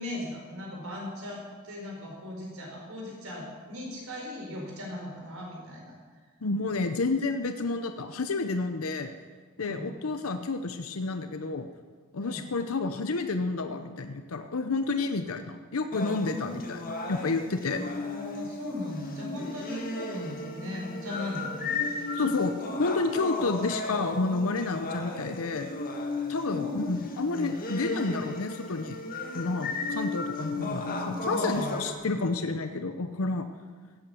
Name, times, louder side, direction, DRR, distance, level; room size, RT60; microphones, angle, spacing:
voice 1, 0.0-5.9 9.6-9.9 12.2-12.4 16.3-16.6 17.7-22.2 22.6-22.8 26.5-27.1 30.5-31.8, left 1 dB, 70° right, -1 dB, 4.7 m, -38 dB
voice 2, 6.4-9.1 9.6-11.7 12.1-16.8 17.1-17.8 22.1-25.7 26.3-29.0 29.3-33.5, left 3 dB, 75° left, 8 dB, 0.8 m, -30 dB
sound 1, 15.9-31.9, left 3 dB, 40° left, 1.6 m, -35 dB
16.0 x 8.8 x 7.0 m, 1.5 s
head